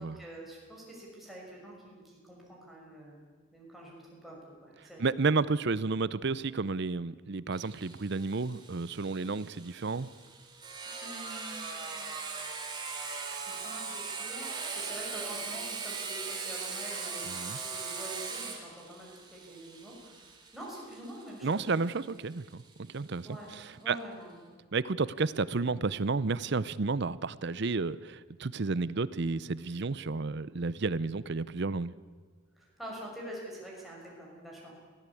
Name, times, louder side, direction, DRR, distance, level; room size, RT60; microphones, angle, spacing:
voice 1, 0.0-3.2 3.5-5.1 11.0-12.2 13.3-14.5 14.7-20.2 20.5-21.8 23.2-24.4 32.6-34.7, right 1 dB, ahead, -4 dB, 6.1 m, -46 dB
voice 2, 5.0-10.1 17.3-17.6 21.4-24.0 24.7-31.9, right 4 dB, 55° right, 18 dB, 0.6 m, -31 dB
Sawing, 7.5-22.9, right 4 dB, 20° right, 3.1 m, -40 dB
22.5 x 16.0 x 8.5 m, 1.5 s
head